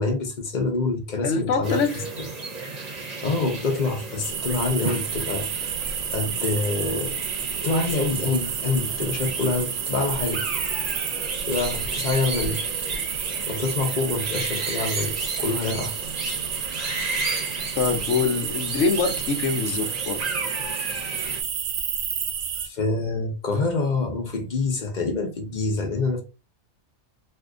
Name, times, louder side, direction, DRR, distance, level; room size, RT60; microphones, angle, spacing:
voice 1, 0.0-1.8 2.2-2.3 2.9-5.5 6.1-7.1 7.6-10.4 11.5-12.6 13.5-15.9 22.6-26.2, left 3 dB, 45° left, 0.7 m, -26 dB
voice 2, 1.2-2.0 17.8-20.2, left 5 dB, 90° left, 1.0 m, -24 dB
sound 1, 1.6-21.4, right 3 dB, 40° right, 0.7 m, -34 dB
sound 2, 4.2-22.7, right 7 dB, 75° right, 0.9 m, -30 dB
2.7 x 2.4 x 3.5 m
omnidirectional pair, 1.2 m